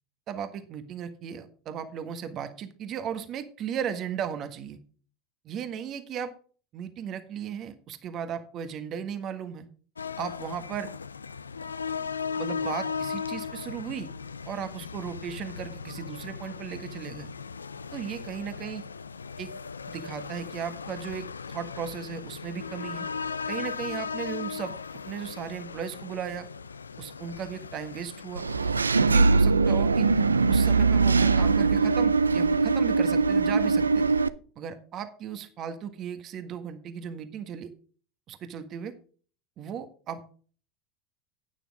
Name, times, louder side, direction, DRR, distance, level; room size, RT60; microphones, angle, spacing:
voice 1, 0.3-4.8 5.4-6.3 6.7-9.7 10.2-10.9 12.4-14.1 14.4-17.3 17.9-18.8 19.4-19.5 19.9-23.1 23.5-24.7 25.0-26.5 27.0-28.4 29.0-30.1 30.5-34.0 34.5-37.7 38.3-38.9 39.6-40.4, right 8 dB, 45° right, 9 dB, 1.6 m, -36 dB
sound 1, 10.0-28.7, left 5 dB, 85° left, 0.4 m, -37 dB
Engine / Mechanisms, 28.4-34.3, right 4 dB, 90° right, 0.5 m, -21 dB
11.5 x 9.3 x 3.6 m, 0.41 s
hypercardioid pair, 80°, 0 cm